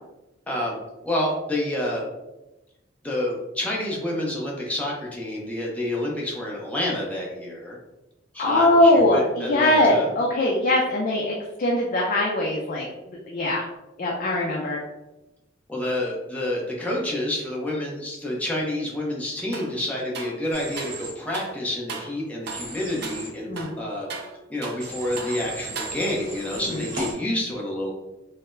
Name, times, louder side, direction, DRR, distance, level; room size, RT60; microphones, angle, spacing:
voice 1, 0.5-0.8 1.0-2.0 3.0-7.8 8.3-10.1 15.7-24.1 24.5-27.9, left 1 dB, 10° left, -4 dB, 0.7 m, -28 dB
voice 2, 8.4-12.9 13.3-13.6 14.0-14.8 23.5-23.7 26.7-26.9, left 1 dB, 45° left, -2 dB, 0.4 m, -21 dB
sound 1, 19.5-19.8 20.1-21.0 21.3-21.6 21.9-22.2 22.5-22.7 23.0-23.2 23.6-24.9 25.2-25.4 25.8-26.3, right 4 dB, 55° right, 0.4 m, -37 dB
Human voice / Train, 20.5-21.1 22.5-23.3 24.8-27.1, right 1 dB, 85° right, 1.1 m, -36 dB
3.9 x 2.0 x 2.5 m, 0.99 s
head